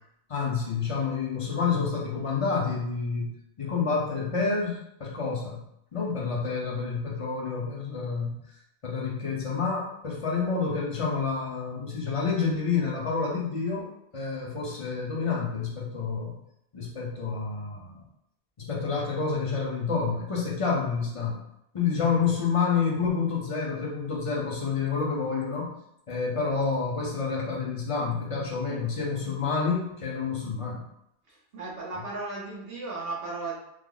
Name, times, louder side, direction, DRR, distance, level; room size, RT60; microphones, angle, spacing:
voice 1, 0.3-3.3 3.6-5.6 5.9-8.4 8.8-13.9 14.1-16.3 16.7-18.0 18.6-21.4 21.7-25.7 26.1-30.8, left 5 dB, 35° left, -3 dB, 0.7 m, -28 dB
voice 2, 31.3-33.6, right 3 dB, 65° right, -3 dB, 0.9 m, -35 dB
3.2 x 2.0 x 3.7 m, 0.78 s
omnidirectional pair, 1.1 m